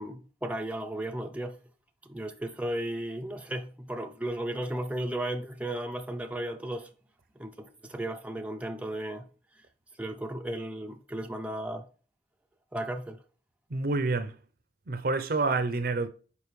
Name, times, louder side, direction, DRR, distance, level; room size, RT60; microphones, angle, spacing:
voice 1, 0.0-1.6 2.1-6.9 7.4-9.3 10.0-11.9 12.7-13.2, right 1 dB, 10° right, 0.5 m, -35 dB
voice 2, 13.7-14.3 14.9-16.1, right 3 dB, 55° right, 0.7 m, -28 dB
7.0 x 5.1 x 3.2 m
head